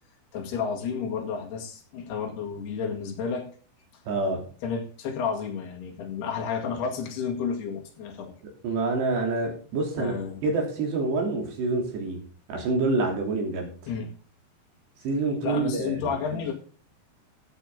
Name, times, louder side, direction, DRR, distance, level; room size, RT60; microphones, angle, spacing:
voice 1, 0.3-3.5 4.6-8.3 10.0-10.4 13.9-14.1 15.4-16.5, left 6 dB, 75° left, 2 dB, 4.0 m, -31 dB
voice 2, 4.1-4.4 8.6-10.1 10.4-12.2 12.5-13.7 15.0-16.5, right 3 dB, 85° right, 1 dB, 5.3 m, -27 dB
13.0 x 8.9 x 3.8 m, 0.39 s
omnidirectional pair, 4.7 m